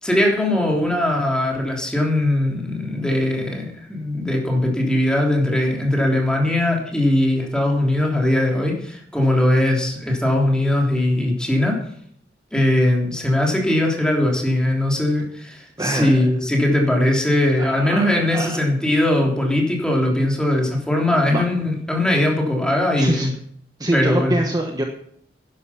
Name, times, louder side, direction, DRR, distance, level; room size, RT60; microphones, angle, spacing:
voice 1, 0.0-11.8 12.5-23.3 23.9-24.4, left 1 dB, 5° left, 0 dB, 3.3 m, -20 dB
voice 2, 15.8-16.2 17.6-18.6 21.3-21.4 23.0-23.3 23.8-24.8, right 1 dB, 20° right, 2 dB, 1.2 m, -24 dB
12.0 x 10.5 x 5.8 m, 0.64 s
head